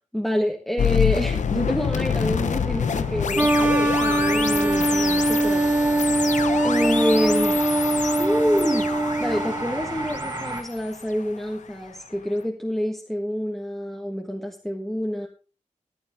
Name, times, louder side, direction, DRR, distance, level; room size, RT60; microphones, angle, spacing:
voice 1, 0.1-5.6 6.6-7.6 8.2-15.3, equal, ahead, 0 dB, 1.3 m, -27 dB
sound 1, 0.8-11.8, left 7 dB, 70° left, 0.8 m, -27 dB
sound 2, 1.4-10.6, right 2 dB, 30° right, 1.9 m, -35 dB
sound 3, 3.4-9.7, right 2 dB, 15° right, 0.9 m, -22 dB
14.5 x 9.9 x 3.5 m, 0.35 s
wide cardioid pair, 160°, 13 cm